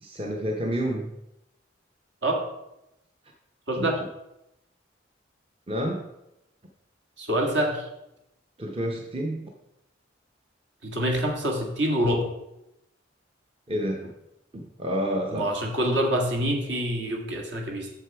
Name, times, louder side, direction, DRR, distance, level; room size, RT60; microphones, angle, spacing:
voice 1, 0.0-1.1 3.8-3.9 5.7-6.1 8.6-9.5 13.7-14.1 14.5-15.5, equal, 30° right, 2 dB, 0.7 m, -29 dB
voice 2, 3.7-4.0 7.2-7.9 10.8-12.3 15.3-17.9, right 1 dB, 65° right, 1 dB, 1.8 m, -26 dB
7.9 x 6.8 x 4.7 m, 0.88 s
head